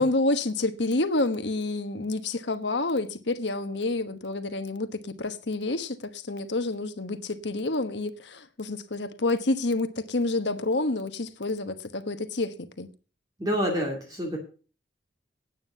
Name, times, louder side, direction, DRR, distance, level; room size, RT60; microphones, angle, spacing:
voice 1, 0.0-12.9, left 2 dB, 70° left, 1.2 m, -28 dB
voice 2, 13.4-14.4, equal, 20° right, 2.6 m, -27 dB
9.3 x 9.0 x 6.8 m
head